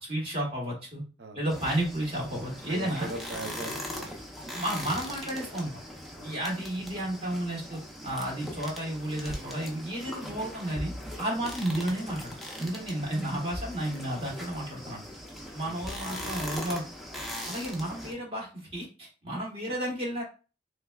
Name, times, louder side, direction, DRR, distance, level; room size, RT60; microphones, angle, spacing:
voice 1, 0.0-1.0 1.3-3.1 4.5-5.8 6.2-15.0 15.5-16.8 17.5-20.2, right 1 dB, 30° right, -2 dB, 1.0 m, -32 dB
sound 1, 1.5-18.1, equal, ahead, 0.5 m, -40 dB
voice 2, 2.7-4.2 6.2-6.3 15.6-15.8 16.1-16.4, right 2 dB, 65° right, 5 dB, 0.7 m, -40 dB
3.4 x 3.3 x 2.3 m, 0.33 s
head